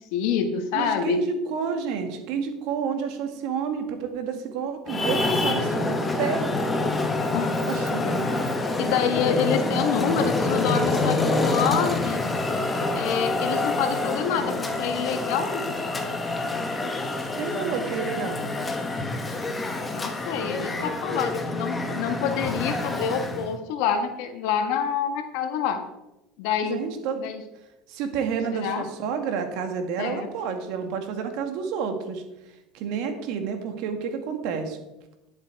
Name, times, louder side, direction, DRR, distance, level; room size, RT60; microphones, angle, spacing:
voice 1, 0.0-1.2 7.3-7.6 8.0-8.4 8.8-12.3 12.9-15.7 18.0-18.2 19.9-25.8 26.4-26.8 27.2-27.4 28.5-28.8 30.0-30.3, left 7 dB, 70° left, 6 dB, 1.5 m, -27 dB
voice 2, 0.7-6.4 7.7-8.1 17.4-18.4 26.6-27.3 27.9-32.2 32.7-34.8, right 6 dB, 65° right, 6 dB, 2.0 m, -30 dB
Traffic noise roadway noise, 4.9-23.5, left 2 dB, 15° left, 1.4 m, -27 dB
11.0 x 7.1 x 4.7 m, 0.94 s
supercardioid pair, 115°, 0 cm